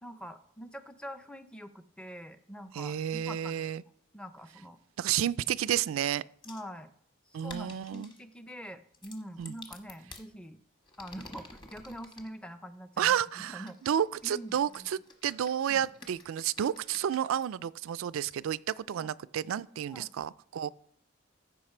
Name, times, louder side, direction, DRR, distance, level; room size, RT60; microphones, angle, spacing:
voice 1, 0.0-3.7 4.1-4.8 6.4-6.9 7.3-10.6 11.0-13.8 14.2-14.9 15.7-15.8 19.0-19.1 19.9-20.1, equal, 5° left, 0.4 m, -45 dB
voice 2, 2.7-3.8 5.0-6.2 7.3-8.1 9.4-9.5 13.0-20.7, right 9 dB, 80° right, 0.3 m, -31 dB
sound 1, 6.4-6.7 7.4-8.2 8.9-10.3 10.8-12.3 13.1-17.5 18.3-18.4 18.9-19.0 19.5-19.6, left 3 dB, 25° left, 1.1 m, -51 dB
14.5 x 5.3 x 4.4 m
head